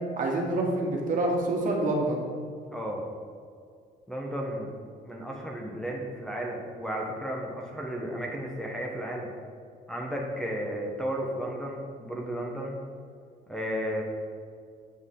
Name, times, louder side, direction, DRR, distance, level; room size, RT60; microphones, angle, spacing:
voice 1, 0.2-2.3, right 2 dB, 50° right, -1 dB, 1.5 m, -27 dB
voice 2, 2.7-3.1 4.1-4.7 5.0-9.3 9.9-12.7 13.5-14.0, equal, 5° left, -2 dB, 1.0 m, -33 dB
7.5 x 6.2 x 3.7 m, 2.2 s
cardioid pair, 110°, 17 cm